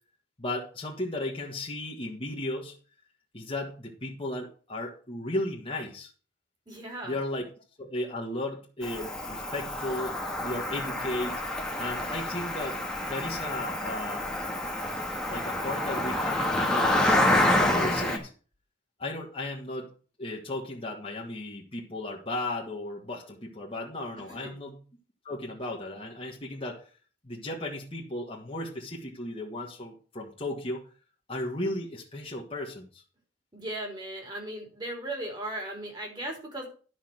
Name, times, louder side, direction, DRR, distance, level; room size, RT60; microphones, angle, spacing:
voice 1, 0.4-2.7 3.3-6.1 7.0-7.5 7.8-11.4 11.8-12.8 13.1-14.2 15.3-17.2 17.6-18.3 19.0-19.9 20.2-24.8 25.3-26.8 27.2-30.8 31.3-33.0, left 1 dB, 30° left, -3 dB, 1.8 m, -35 dB
voice 2, 6.7-7.2 24.3-24.5 33.5-36.7, right 1 dB, 25° right, 1 dB, 3.8 m, -37 dB
Cricket, 8.8-18.2, left 1 dB, 5° left, 1.7 m, -28 dB
11.0 x 6.4 x 6.2 m, 0.38 s
head